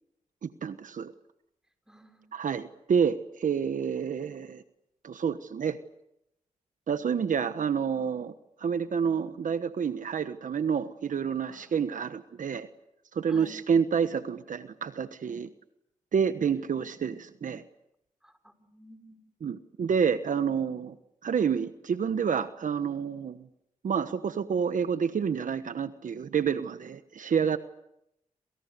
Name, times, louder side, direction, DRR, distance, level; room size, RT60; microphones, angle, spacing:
voice 1, 0.4-1.1 2.3-4.6 5.0-5.8 6.9-8.3 8.6-12.7 13.1-15.5 16.1-17.6 19.4-20.9 21.2-23.5 23.8-27.6, right 7 dB, 65° right, 11 dB, 1.2 m, -28 dB
voice 2, 1.9-2.3 11.5-11.8 13.3-13.6 18.2-19.2, equal, 5° right, 7 dB, 5.6 m, -52 dB
28.5 x 27.5 x 6.8 m, 0.79 s
cardioid pair, 65°, 14 cm